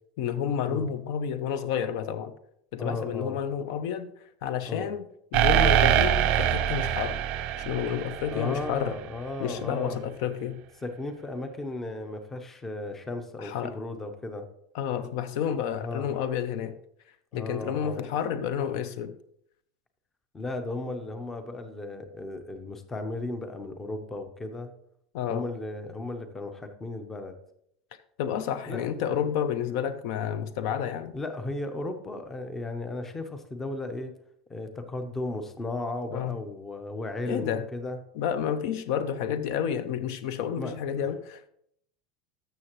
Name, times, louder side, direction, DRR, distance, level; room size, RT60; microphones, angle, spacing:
voice 1, 0.2-2.3 2.7-4.1 4.4-5.0 5.3-7.2 7.6-9.0 9.4-10.6 13.4-13.8 14.7-16.8 17.3-19.1 25.1-25.4 28.2-31.1 36.1-36.4 37.2-37.6 38.2-41.5, left 8 dB, 50° left, 0.5 m, -30 dB
voice 2, 2.8-3.4 4.6-4.9 8.3-10.0 10.8-14.5 15.8-16.1 17.3-18.1 20.3-24.7 25.3-27.4 28.7-28.8 31.1-34.1 34.5-38.0 40.6-40.8, left 2 dB, 10° left, 0.6 m, -35 dB
sound 1, 5.3-9.0, right 10 dB, 35° right, 0.5 m, -24 dB
13.0 x 6.6 x 3.0 m
supercardioid pair, 175°, 3 cm